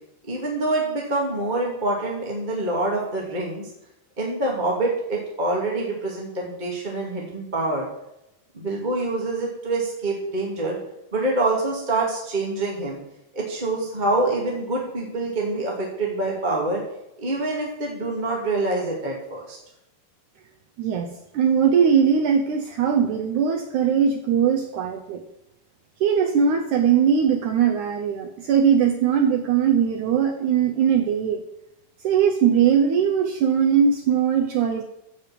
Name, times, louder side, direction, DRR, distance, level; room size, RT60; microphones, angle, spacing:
voice 1, 0.3-3.7 4.2-7.9 8.5-10.8 11.1-13.0 13.3-16.8 17.2-19.6, right 2 dB, 20° right, -2 dB, 1.4 m, -26 dB
voice 2, 20.8-21.1 21.3-25.2 26.0-31.4 32.0-34.8, right 7 dB, 80° right, 3 dB, 1.8 m, -20 dB
14.0 x 5.3 x 7.6 m, 0.85 s
omnidirectional pair, 4.6 m